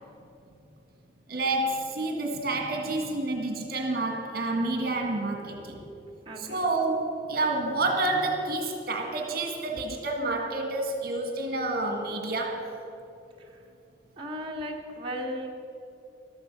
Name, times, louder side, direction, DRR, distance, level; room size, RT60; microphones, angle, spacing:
voice 1, 1.3-5.8 6.4-12.7, right 2 dB, 60° right, 3 dB, 1.8 m, -29 dB
voice 2, 5.5-5.9 6.3-6.6 13.4-13.6 14.2-15.5, equal, 30° right, -1 dB, 1.8 m, -37 dB
14.5 x 12.5 x 5.5 m, 2.8 s
head